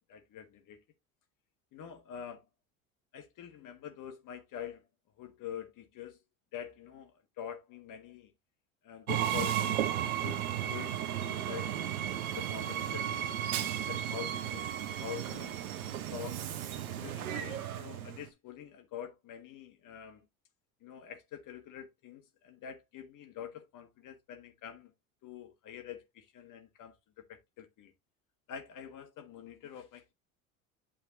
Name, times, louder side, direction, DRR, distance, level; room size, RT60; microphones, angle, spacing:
voice 1, 0.1-0.8 1.7-2.4 3.1-4.9 5.2-6.2 6.5-8.3 8.8-9.8 10.2-10.4 10.7-11.7 12.3-13.4 13.9-14.7 15.0-15.6 16.1-16.4 17.0-20.2 20.8-24.9 25.2-27.9 28.5-30.1, left 9 dB, 45° left, 1.5 m, -45 dB
Train, 9.1-18.3, right 10 dB, 85° right, 1.1 m, -34 dB
8.7 x 4.9 x 2.9 m
hypercardioid pair, 80°, 42 cm